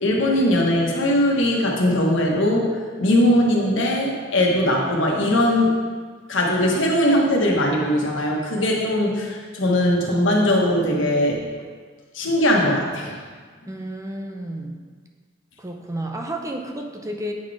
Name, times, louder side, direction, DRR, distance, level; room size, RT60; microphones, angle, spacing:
voice 1, 0.0-2.7 3.0-5.7 6.3-11.4 12.1-13.2, left 1 dB, 85° left, -1 dB, 1.3 m, -20 dB
voice 2, 13.7-14.9 15.6-17.3, right 1 dB, 15° right, 2 dB, 0.6 m, -31 dB
8.3 x 4.1 x 4.8 m, 1.5 s
head